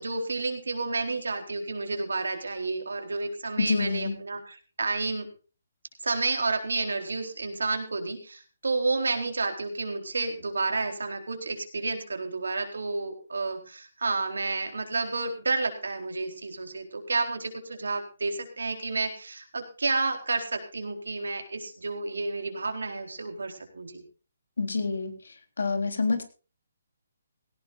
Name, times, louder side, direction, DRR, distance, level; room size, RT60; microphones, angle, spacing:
voice 1, 0.0-5.3 6.0-24.0, right 3 dB, 80° right, 5 dB, 4.1 m, -30 dB
voice 2, 3.6-4.1 24.6-25.1 25.6-26.2, left 4 dB, 80° left, 7 dB, 3.6 m, -27 dB
17.5 x 17.5 x 2.6 m, 0.35 s
hypercardioid pair, 145°, 0 cm